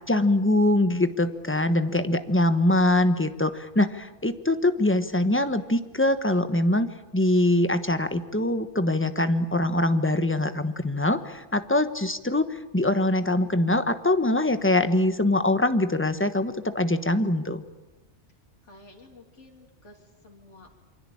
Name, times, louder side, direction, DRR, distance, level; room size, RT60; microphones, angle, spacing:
voice 1, 0.1-17.6, left 1 dB, 10° left, 10 dB, 1.2 m, -23 dB
voice 2, 18.6-20.8, left 2 dB, 85° left, 1 dB, 3.3 m, -52 dB
28.0 x 24.0 x 8.7 m, 1.1 s
omnidirectional pair, 1.2 m